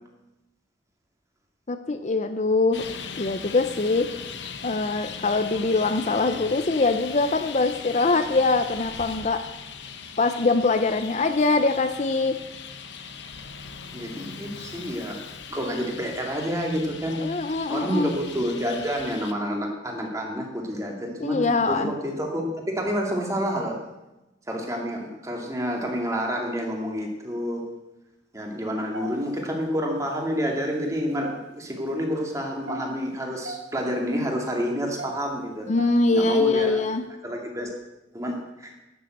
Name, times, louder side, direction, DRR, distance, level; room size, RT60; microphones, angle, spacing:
voice 1, 1.7-2.8 3.2-4.1 4.6-9.4 10.2-12.4 17.2-18.1 21.2-21.9 35.7-37.0, left 3 dB, 40° left, 9 dB, 0.6 m, -23 dB
Traffic noise roadway noise, 2.7-19.3, left 6 dB, 70° left, 0.9 m, -39 dB
voice 2, 13.9-15.2 15.5-17.2 17.7-23.8 24.5-27.7 28.3-35.7 36.1-36.8 37.2-37.7 38.1-38.7, equal, 15° right, 1 dB, 2.2 m, -29 dB
sound 1, 28.9-29.6 30.1-30.3 30.9-31.9 32.4-33.6 33.9-34.1 34.6-37.0, right 3 dB, 75° right, 1.8 m, -38 dB
12.0 x 7.2 x 7.9 m, 1.0 s
head